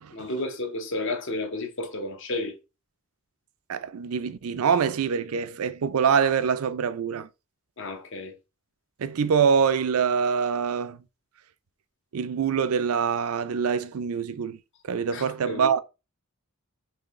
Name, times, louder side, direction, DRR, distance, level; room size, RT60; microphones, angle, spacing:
voice 1, 0.1-2.6 7.8-8.3 15.1-15.7, left 2 dB, 60° left, 0.9 m, -32 dB
voice 2, 3.7-7.3 9.0-11.0 12.1-14.6 14.8-15.8, right 6 dB, 80° right, 0.4 m, -25 dB
4.5 x 3.2 x 3.1 m
head